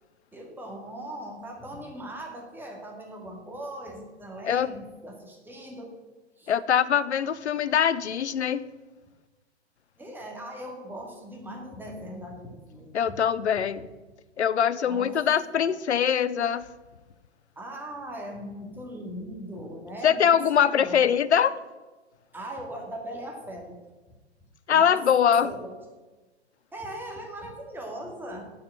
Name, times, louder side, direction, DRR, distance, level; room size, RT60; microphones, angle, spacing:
voice 1, 0.3-6.0 6.4-6.5 10.0-13.2 14.9-15.2 15.5-15.7 17.6-21.4 22.3-23.8 24.7-25.0 25.4-25.8 26.7-28.5, right 1 dB, 5° right, 0 dB, 2.1 m, -39 dB
voice 2, 6.5-8.6 12.9-13.9 14.4-16.7 20.0-21.5 24.7-25.5, left 8 dB, 75° left, 16 dB, 0.8 m, -23 dB
8.7 x 7.4 x 8.8 m, 1.2 s
figure-of-eight pair, 120°, 34 cm